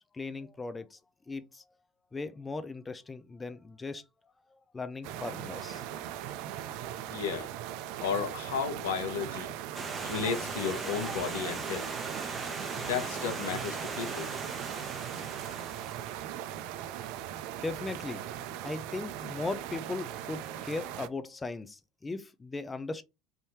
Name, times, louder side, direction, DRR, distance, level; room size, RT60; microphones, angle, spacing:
voice 1, 0.1-1.0 1.3-1.6 2.1-4.0 4.5-5.9 17.6-18.3 18.6-23.0, left 3 dB, 20° left, 0.4 m, -38 dB
sound 1, 5.0-21.1, right 11 dB, 70° right, 0.4 m, -39 dB
voice 2, 7.1-7.5 8.0-9.5 10.0-11.9 12.8-14.3, left 6 dB, 85° left, 0.8 m, -33 dB
Stream, 9.7-16.2, right 3 dB, 20° right, 0.9 m, -39 dB
3.5 x 2.6 x 3.1 m
hypercardioid pair, 80°, 0 cm